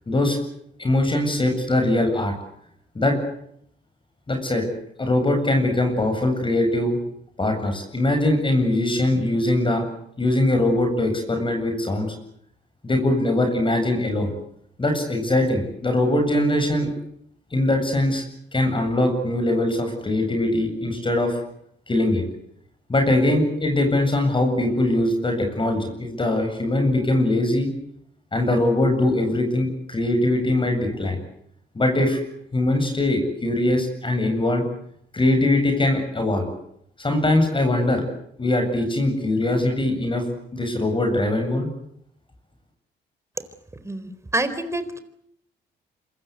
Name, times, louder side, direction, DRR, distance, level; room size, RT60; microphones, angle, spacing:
voice 1, 0.1-0.4 0.8-2.3 2.9-3.2 4.3-4.6 5.0-7.0 7.4-9.8 10.2-12.1 12.8-14.3 14.8-16.9 17.5-18.2 18.5-21.4 21.9-22.2 22.9-27.7 28.3-31.2 31.7-32.2 32.5-34.6 35.1-36.5 37.0-38.0 38.4-40.2 40.5-41.7, left 1 dB, 25° left, 5 dB, 7.9 m, -21 dB
voice 2, 43.8-45.0, right 2 dB, 15° right, 10 dB, 4.2 m, -27 dB
27.0 x 24.5 x 8.3 m, 0.72 s
cardioid pair, 90°, 20 cm